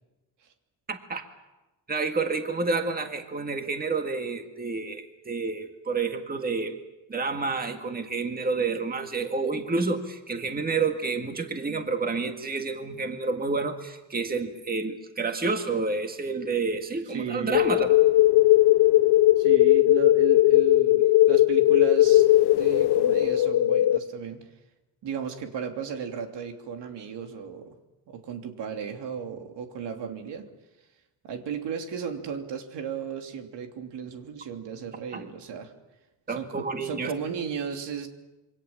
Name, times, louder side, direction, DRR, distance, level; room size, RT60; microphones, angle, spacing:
voice 1, 0.9-1.2 1.9-6.7 7.1-17.9 35.1-35.3 36.3-37.1, right 4 dB, 20° right, 5 dB, 1.9 m, -29 dB
voice 2, 17.1-17.6 19.4-24.5 25.0-27.8 28.1-30.5 31.2-35.7 36.3-38.1, right 7 dB, 85° right, 4 dB, 3.0 m, -35 dB
sound 1, 17.5-24.0, left 15 dB, 70° left, 1.0 m, -19 dB
27.0 x 24.0 x 7.3 m, 1.0 s
cardioid pair, 140°, 41 cm